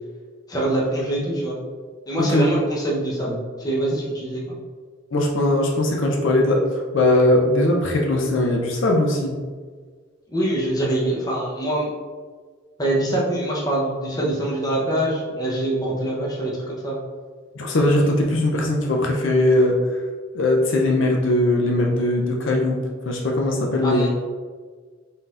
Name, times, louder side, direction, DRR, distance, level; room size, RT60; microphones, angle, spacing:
voice 1, 0.5-1.6 2.1-4.4 10.3-11.9 12.8-17.0 23.8-24.1, right 1 dB, 20° left, -4 dB, 0.8 m, -24 dB
voice 2, 2.2-2.5 5.1-9.4 17.6-19.9 20.3-24.1, left 1 dB, 65° left, 0 dB, 0.5 m, -20 dB
4.1 x 3.9 x 2.5 m, 1.5 s
head